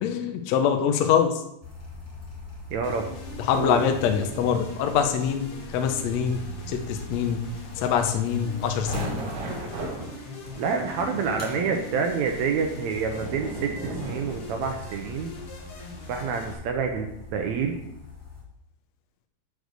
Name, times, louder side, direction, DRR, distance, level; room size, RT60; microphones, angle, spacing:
voice 1, 0.0-1.4 3.4-7.4 7.8-9.2, left 8 dB, 70° left, 6 dB, 1.7 m, -24 dB
sound 1, 1.6-10.2 11.4-18.4, left 2 dB, 5° left, 1.2 m, -41 dB
voice 2, 2.7-3.1 3.6-3.8 10.6-15.3 16.1-17.8, right 5 dB, 75° right, 4 dB, 1.8 m, -28 dB
sound 2, 2.8-16.5, left 2 dB, 55° left, 1.7 m, -42 dB
sound 3, 8.4-14.7, right 2 dB, 60° right, 2.5 m, -36 dB
6.2 x 5.2 x 6.5 m, 0.79 s
omnidirectional pair, 3.8 m